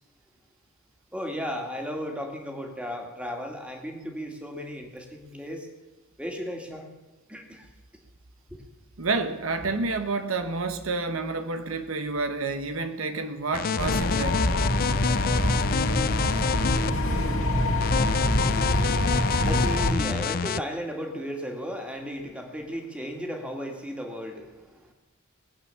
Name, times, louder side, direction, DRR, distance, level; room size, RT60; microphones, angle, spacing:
voice 1, 1.1-5.7 6.2-6.9 7.3-7.7 8.5-8.6 18.2-24.9, equal, 5° right, 2.3 m, -35 dB
voice 2, 9.0-14.5, right 3 dB, 75° right, 1.0 m, -29 dB
sound 1, 13.5-16.9 17.8-20.6, left 7 dB, 45° left, 0.4 m, -28 dB
sound 2, 13.8-19.9, left 1 dB, 70° left, 2.7 m, -25 dB
20.5 x 8.8 x 7.0 m
head